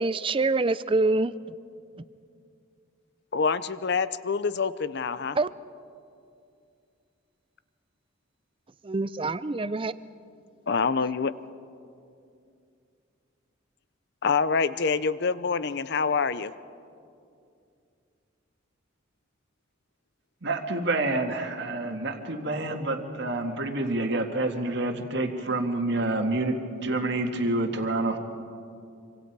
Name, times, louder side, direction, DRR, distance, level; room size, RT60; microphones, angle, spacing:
voice 1, 0.0-1.3 5.4-5.5 8.9-9.9, right 3 dB, 25° right, 16 dB, 0.5 m, -25 dB
voice 2, 3.3-5.4 10.7-11.3 14.2-16.5, left 5 dB, 55° left, 15 dB, 0.7 m, -26 dB
voice 3, 20.4-26.6 26.8-28.2, right 2 dB, 60° right, 4 dB, 1.9 m, -28 dB
26.0 x 25.5 x 4.7 m, 2.5 s
head